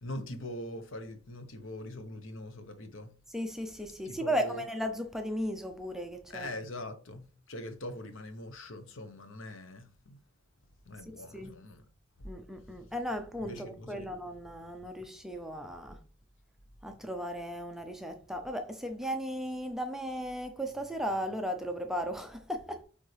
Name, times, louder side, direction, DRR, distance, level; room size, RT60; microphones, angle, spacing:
voice 1, 0.0-3.1 4.0-4.6 6.3-10.2 10.8-11.8 13.4-14.1, left 1 dB, 65° left, 0.9 m, -42 dB
voice 2, 3.3-6.5 11.1-11.5 12.2-16.0 16.8-22.8, equal, ahead, 0.5 m, -36 dB
8.3 x 3.6 x 3.3 m
head